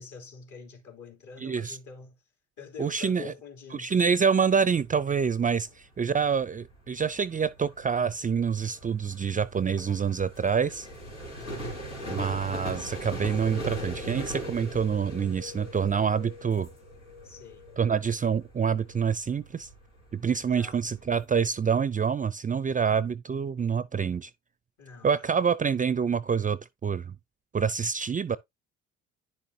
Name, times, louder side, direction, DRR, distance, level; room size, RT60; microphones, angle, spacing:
voice 1, 0.0-2.2 2.6-4.2 5.7-5.8 11.4-11.8 17.2-17.8 20.4-20.8 24.8-25.3, left 5 dB, 55° left, 3.2 m, -46 dB
voice 2, 1.4-1.8 2.8-3.3 3.7-10.9 12.1-16.7 17.8-19.7 20.1-24.3 25.0-27.1 27.5-28.4, right 6 dB, 25° right, 0.5 m, -27 dB
sound 1, 4.7-21.2, equal, 90° left, 3.5 m, -41 dB
10.0 x 6.4 x 2.8 m
hypercardioid pair, 50°, 35 cm